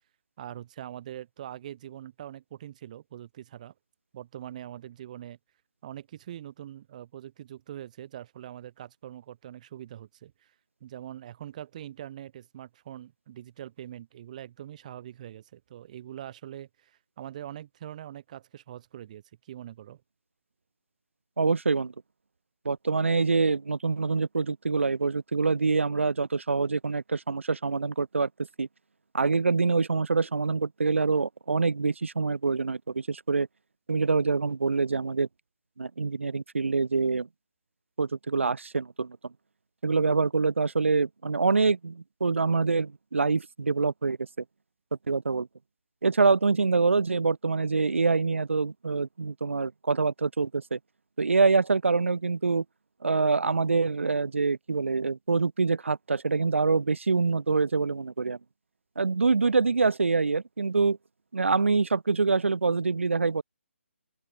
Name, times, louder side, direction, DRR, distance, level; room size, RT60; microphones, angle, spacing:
voice 1, 0.4-3.7 4.1-5.4 5.8-10.5 10.8-20.0, right 11 dB, 35° right, 7.2 m, -43 dB
voice 2, 21.4-21.9 22.6-28.3 28.6-28.7 29.1-33.5 33.9-35.3 35.8-37.3 38.0-39.2 39.8-44.3 45.1-45.5 46.0-50.8 51.2-52.6 53.0-58.4 59.0-61.0 61.3-63.4, right 4 dB, 70° right, 0.9 m, -25 dB
open air
figure-of-eight pair, 145°, 7 cm